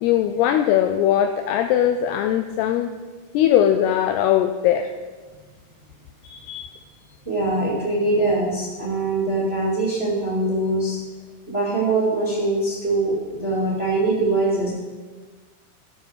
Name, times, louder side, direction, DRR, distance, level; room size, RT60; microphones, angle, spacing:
voice 1, 0.0-2.9 3.3-4.9, left 10 dB, 85° left, 8 dB, 2.3 m, -20 dB
voice 2, 6.2-6.6 7.2-11.0 11.5-14.7, right 2 dB, 25° right, -5 dB, 1.4 m, -23 dB
15.0 x 6.6 x 6.3 m, 1.3 s
omnidirectional pair, 5.2 m